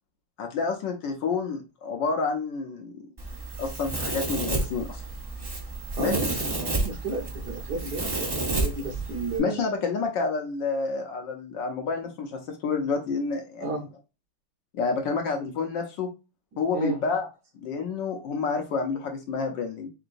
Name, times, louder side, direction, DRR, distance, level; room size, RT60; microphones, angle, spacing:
voice 1, 0.4-2.9 3.6-5.0 6.0-6.2 9.4-13.7 14.7-16.1 16.6-17.3 17.6-19.9, left 4 dB, 65° left, 4 dB, 1.3 m, -29 dB
Domestic sounds home sounds, 3.2-9.4, right 2 dB, 40° right, 0.3 m, -30 dB
voice 2, 5.9-9.6 13.6-13.8 16.7-17.0, right 3 dB, 60° right, 1 dB, 1.3 m, -32 dB
3.8 x 3.8 x 2.5 m, 0.29 s
omnidirectional pair, 2.3 m